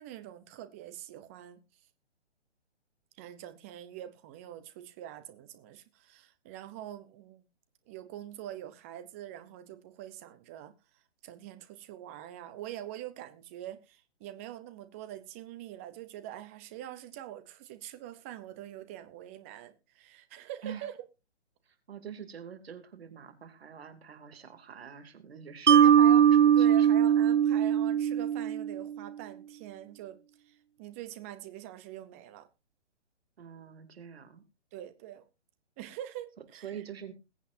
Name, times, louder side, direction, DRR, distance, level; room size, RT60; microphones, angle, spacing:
voice 1, 0.0-1.6 3.2-7.4 7.9-10.7 11.2-21.0 25.7-30.2 30.4-32.5 34.7-35.2 35.8-36.8, right 12 dB, 10° right, 0.6 m, -44 dB
voice 2, 21.9-25.8 26.1-26.9 33.4-34.4 36.6-37.1, right 8 dB, 60° right, 2.8 m, -45 dB
Mallet percussion, 25.7-28.9, right 9 dB, 85° right, 0.7 m, -21 dB
21.0 x 8.3 x 2.6 m
hypercardioid pair, 155°, 34 cm